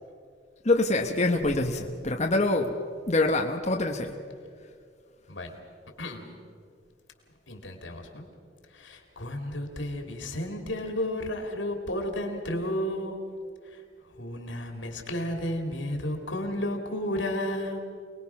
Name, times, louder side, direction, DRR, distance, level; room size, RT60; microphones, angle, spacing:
voice 1, 0.6-2.7 3.1-4.2, left 2 dB, 35° left, 2 dB, 1.2 m, -25 dB
voice 2, 7.5-8.3 8.7-13.2 13.7-13.8 14.2-17.8, left 1 dB, 85° left, 3 dB, 3.1 m, -32 dB
27.0 x 20.0 x 6.0 m, 2.2 s
head